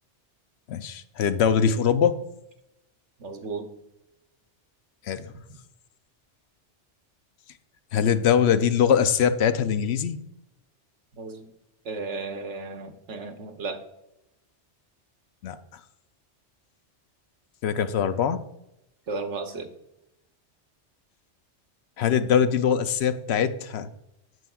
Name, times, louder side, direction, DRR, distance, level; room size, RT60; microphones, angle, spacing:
voice 1, 0.7-2.2 5.1-5.3 7.9-10.2 15.4-15.6 17.6-18.4 22.0-23.9, left 8 dB, 70° left, 12 dB, 0.8 m, -22 dB
voice 2, 3.2-3.7 11.1-11.5 11.8-13.9 19.1-19.7, right 3 dB, 80° right, 7 dB, 1.2 m, -34 dB
9.2 x 7.1 x 2.3 m, 0.86 s
omnidirectional pair, 1.2 m